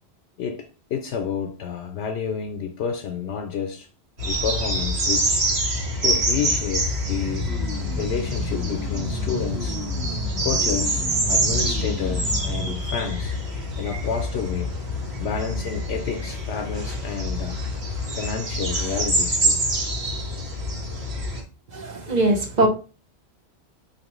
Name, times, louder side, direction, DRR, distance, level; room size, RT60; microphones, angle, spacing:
voice 1, 0.4-3.9 4.2-5.5 6.0-7.5 8.0-9.8 10.4-13.4 13.8-14.7 15.2-17.6 18.1-19.6, left 7 dB, 80° left, 0.8 m, -30 dB
sound 1, 4.2-21.4, equal, 80° right, 1.6 m, -26 dB
sound 2, 7.1-12.7, right 4 dB, ahead, 0.4 m, -34 dB
voice 2, 21.7-22.7, right 1 dB, 45° right, 0.8 m, -21 dB
4.4 x 2.8 x 3.0 m
omnidirectional pair, 1.1 m